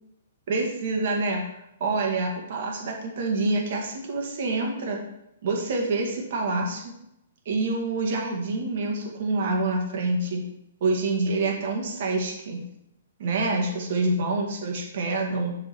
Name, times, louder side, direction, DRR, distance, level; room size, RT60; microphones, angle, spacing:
voice 1, 0.5-1.4 1.8-5.0 5.4-6.9 7.5-10.5 10.8-12.6 13.2-15.6, right 2 dB, 55° right, 0 dB, 2.0 m, -27 dB
6.3 x 5.2 x 4.4 m, 0.82 s
figure-of-eight pair, 120°, 0 cm